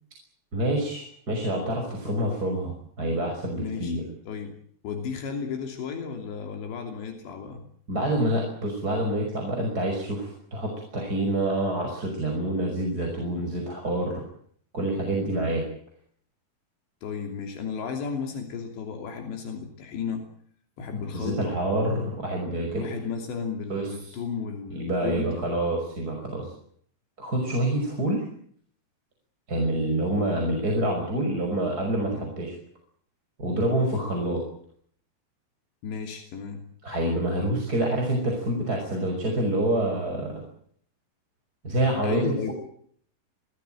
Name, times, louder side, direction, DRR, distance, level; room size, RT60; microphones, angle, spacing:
voice 1, 0.5-4.0 7.9-14.2 14.7-15.6 21.1-22.8 23.7-24.2 24.7-26.5 27.2-28.2 29.5-32.5 33.4-34.4 36.8-40.4 41.6-42.5, right 1 dB, 20° right, 1 dB, 5.9 m, -27 dB
voice 2, 3.6-4.0 4.3-4.5 4.8-7.6 17.0-20.3 20.8-21.6 22.8-25.5 35.8-36.6 42.0-42.5, left 6 dB, 85° left, 4 dB, 5.2 m, -34 dB
26.0 x 18.5 x 9.1 m, 0.63 s
omnidirectional pair, 4.9 m